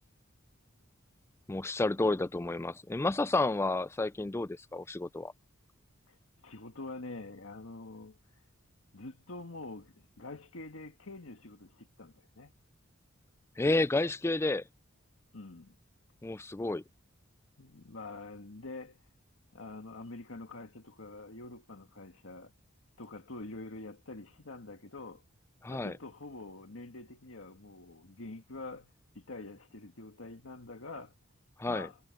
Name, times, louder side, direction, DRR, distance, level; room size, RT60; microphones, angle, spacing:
voice 1, 1.5-5.3 13.6-14.6 16.2-16.8 25.6-25.9 31.6-31.9, left 2 dB, 10° left, 0.3 m, -30 dB
voice 2, 6.4-8.4 8.9-12.5 15.3-15.7 17.6-19.1 19.5-22.5 23.0-25.2 25.7-31.1 31.7-32.0, left 2 dB, 75° left, 1.8 m, -46 dB
head